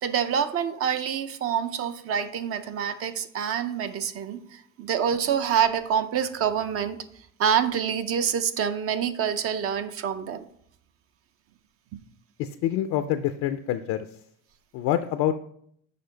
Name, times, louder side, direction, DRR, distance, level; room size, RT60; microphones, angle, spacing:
voice 1, 0.0-7.0 7.4-10.5, right 8 dB, 45° right, 0.5 m, -26 dB
voice 2, 12.4-14.1 14.7-15.3, left 11 dB, 60° left, 0.4 m, -26 dB
6.8 x 5.1 x 3.9 m
cardioid pair, 135°, 33 cm